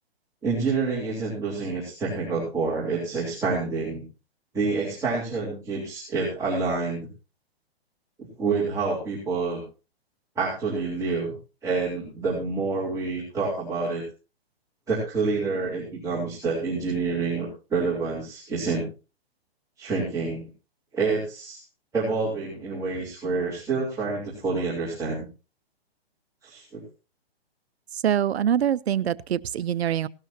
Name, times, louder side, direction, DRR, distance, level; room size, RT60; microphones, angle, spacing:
voice 1, 0.4-4.0 4.5-7.1 8.4-9.6 10.4-11.3 11.6-14.0 14.9-18.9 19.8-20.4 20.9-21.6 21.9-25.3 26.4-26.8, right 4 dB, 10° right, -7 dB, 3.6 m, -27 dB
voice 2, 28.0-30.1, right 10 dB, 80° right, 18 dB, 0.7 m, -24 dB
17.5 x 12.5 x 2.8 m, 0.33 s
hypercardioid pair, 155°, 31 cm